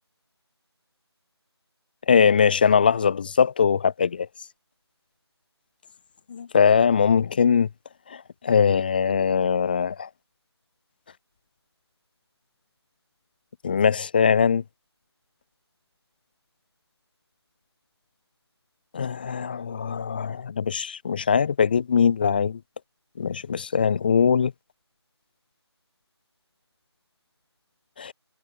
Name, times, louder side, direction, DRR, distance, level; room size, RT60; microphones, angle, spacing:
voice 1, 2.1-4.3 6.3-7.7 8.4-10.1 13.6-14.6 18.9-22.6 23.2-24.5 28.0-28.1, left 6 dB, 20° left, 1.0 m, -21 dB
figure-of-eight pair, 165°, 14 cm